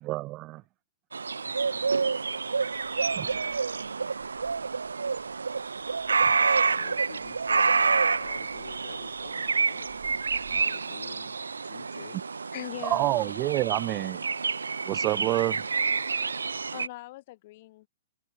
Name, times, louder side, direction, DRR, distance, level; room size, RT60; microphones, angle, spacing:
voice 1, 0.0-0.6 3.2-3.5 6.2-6.3 12.8-14.2 14.8-15.6, right 19 dB, 30° right, 0.6 m, -28 dB
sound 1, 1.1-16.9, right 4 dB, 70° right, 0.6 m, -28 dB
voice 2, 1.5-2.5 6.3-10.0 10.5-12.2 13.1-13.4, left 8 dB, 60° left, 2.8 m, -48 dB
sound 2, 2.6-10.6, right 11 dB, 50° right, 6.9 m, -54 dB
voice 3, 12.5-13.3 16.7-17.9, left 19 dB, 40° left, 4.1 m, -40 dB
figure-of-eight pair, 115°, 0 cm